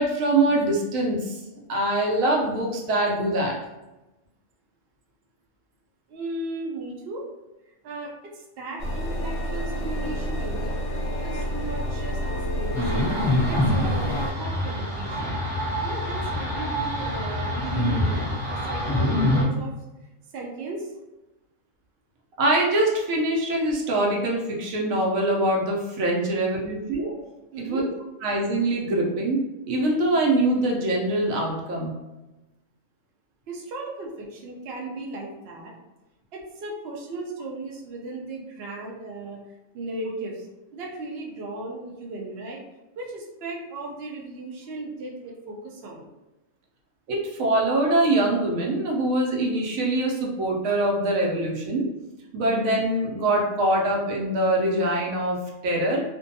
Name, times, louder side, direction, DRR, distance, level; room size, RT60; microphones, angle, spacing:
voice 1, 0.0-1.4 1.7-3.6 22.4-27.3 27.6-27.8 28.2-29.4 29.7-32.0 47.1-51.8 52.3-56.0, right 1 dB, 80° right, -1 dB, 1.0 m, -23 dB
voice 2, 6.1-7.3 7.8-10.8 11.2-13.1 13.5-15.4 15.8-19.7 20.3-20.9 27.5-27.9 33.5-35.7 36.3-39.4 39.7-40.5 40.7-42.6 43.0-46.1, right 2 dB, 60° right, -2 dB, 0.7 m, -36 dB
sound 1, 8.8-14.3, equal, 65° left, 0.5 m, -29 dB
sound 2, 12.7-19.4, left 1 dB, 5° left, 0.8 m, -25 dB
2.5 x 2.2 x 2.6 m, 1.0 s
omnidirectional pair, 1.4 m